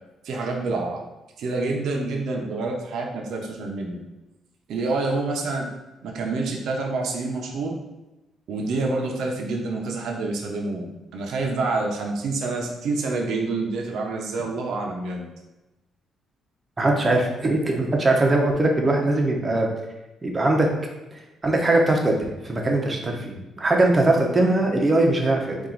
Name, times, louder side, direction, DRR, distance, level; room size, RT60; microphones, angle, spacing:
voice 1, 0.2-1.0 1.4-4.0 4.7-5.7 6.0-7.8 8.5-15.3, right 3 dB, 75° right, 0 dB, 0.8 m, -27 dB
voice 2, 16.8-19.7 20.2-20.7 21.4-25.6, right 2 dB, 25° right, 1 dB, 1.0 m, -21 dB
4.3 x 2.6 x 3.9 m, 1.0 s
cardioid pair, 90°, 0 cm